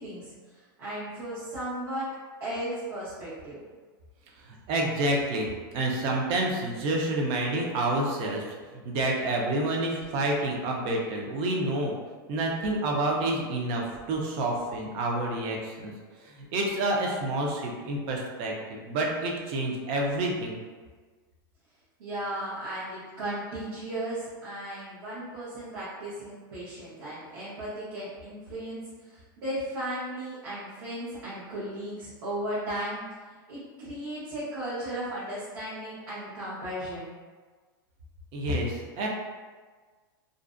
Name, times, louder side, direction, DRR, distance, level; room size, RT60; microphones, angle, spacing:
voice 1, 0.0-2.1 2.4-3.6 22.0-33.0 33.5-37.1, right 1 dB, 75° right, -10 dB, 0.9 m, -36 dB
voice 2, 4.7-8.4 8.7-11.9 12.3-15.9 16.2-20.6 38.3-39.1, right 1 dB, 45° right, 0 dB, 0.5 m, -28 dB
2.4 x 2.0 x 2.4 m, 1.4 s
supercardioid pair, 135°, 12 cm